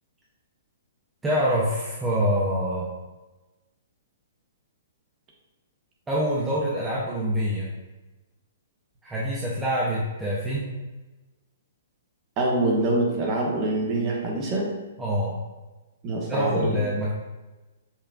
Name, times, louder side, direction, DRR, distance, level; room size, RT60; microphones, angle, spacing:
voice 1, 1.2-2.9 6.1-7.7 9.0-10.8 15.0-15.4 16.3-17.1, equal, 10° right, -7 dB, 0.7 m, -25 dB
voice 2, 12.4-14.7 16.0-16.8, right 2 dB, 30° right, -2 dB, 1.1 m, -25 dB
5.6 x 3.4 x 2.4 m, 1.1 s
figure-of-eight pair, 120°, 0 cm